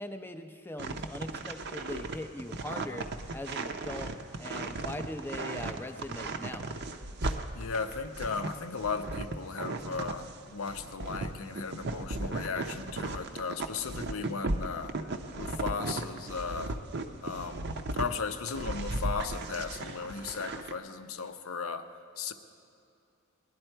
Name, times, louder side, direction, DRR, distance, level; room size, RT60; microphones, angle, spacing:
voice 1, 0.0-3.1 3.3-4.1 4.4-6.7, left 1 dB, 10° left, 6 dB, 0.5 m, -40 dB
sound 1, 0.8-10.3 10.6-18.1 18.5-20.7, right 2 dB, 50° right, 0.6 m, -36 dB
voice 2, 7.5-15.1 15.4-16.8 17.2-21.9 22.2-22.3, left 5 dB, 70° left, 9 dB, 0.7 m, -36 dB
19.5 x 11.0 x 4.5 m, 2.6 s
head